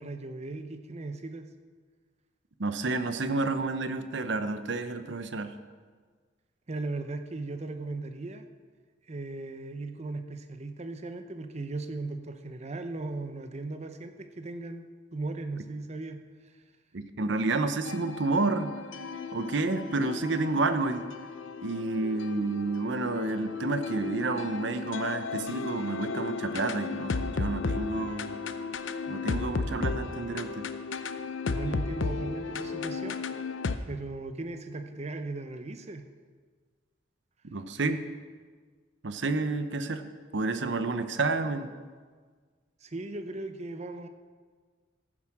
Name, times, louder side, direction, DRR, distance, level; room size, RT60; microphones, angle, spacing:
voice 1, 0.0-1.5 6.7-8.5 9.1-14.8 15.1-16.5 31.4-33.2 33.9-36.1 42.8-44.1, right 2 dB, 35° right, 8 dB, 0.7 m, -37 dB
voice 2, 2.6-5.5 16.9-18.7 19.3-21.1 21.6-28.4 29.1-30.6 37.5-38.0 39.0-40.0 40.3-41.7, right 3 dB, 65° right, 10 dB, 0.8 m, -30 dB
sound 1, 17.8-33.8, left 4 dB, 80° left, 0.6 m, -34 dB
14.5 x 7.4 x 6.0 m, 1.5 s
head